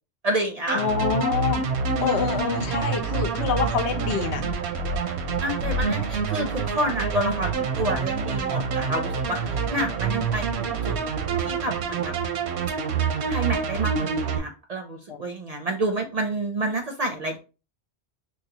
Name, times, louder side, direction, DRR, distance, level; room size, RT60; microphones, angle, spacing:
voice 1, 0.2-0.8 2.0-2.7 5.4-10.9 11.4-12.1 13.0-17.4, right 1 dB, 55° right, 0.4 m, -29 dB
voice 2, 0.7-1.6 2.0-4.5 15.1-15.2, left 7 dB, 85° left, 0.9 m, -26 dB
sound 1, 0.7-14.4, right 5 dB, 85° right, 0.9 m, -27 dB
4.6 x 2.2 x 2.7 m
omnidirectional pair, 1.1 m